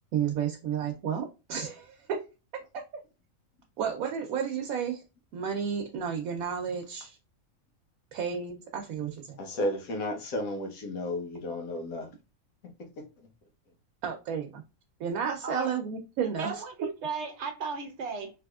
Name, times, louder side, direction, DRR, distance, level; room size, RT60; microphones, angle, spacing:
voice 1, 0.1-2.2 2.5-2.8 3.8-5.0 5.3-7.2 8.1-9.4 14.0-14.6 15.0-16.6, right 7 dB, 85° right, 1.1 m, -32 dB
voice 2, 9.4-12.1 13.0-13.3, left 1 dB, 85° left, 1.3 m, -33 dB
voice 3, 16.2-18.3, right 4 dB, 65° right, 0.8 m, -35 dB
3.4 x 2.9 x 2.3 m
omnidirectional pair, 1.4 m